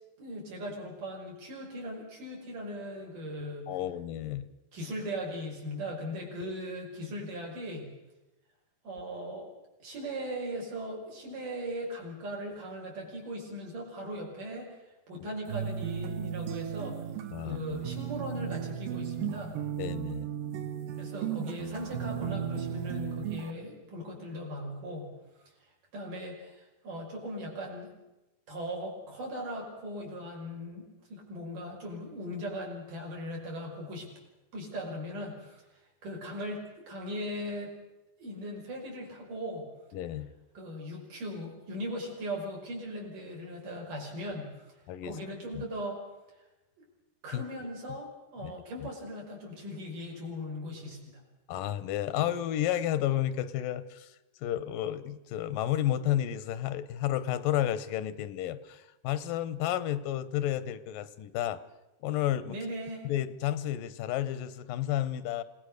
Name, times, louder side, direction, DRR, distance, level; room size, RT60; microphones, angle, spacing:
voice 1, 0.2-3.7 4.7-7.9 8.8-9.5 9.8-14.7 15.1-17.0 17.4-19.6 21.0-25.1 25.9-27.9 28.5-34.1 34.5-35.6 36.0-37.7 38.2-39.7 40.5-44.7 45.0-46.0 47.2-51.2 62.5-63.1, equal, 70° right, -1 dB, 6.8 m, -39 dB
voice 2, 3.7-4.5 6.4-6.5 17.3-17.6 19.8-20.3 39.9-40.3 44.9-45.2 45.5-45.6 47.3-47.4 48.4-48.5 51.5-54.1 54.4-61.6 62.0-62.6 63.0-65.4, left 12 dB, 80° left, 15 dB, 2.6 m, -31 dB
sound 1, 15.5-23.5, right 9 dB, 90° right, 2.8 m, -35 dB
27.5 x 18.5 x 6.5 m, 1.0 s
omnidirectional pair, 3.9 m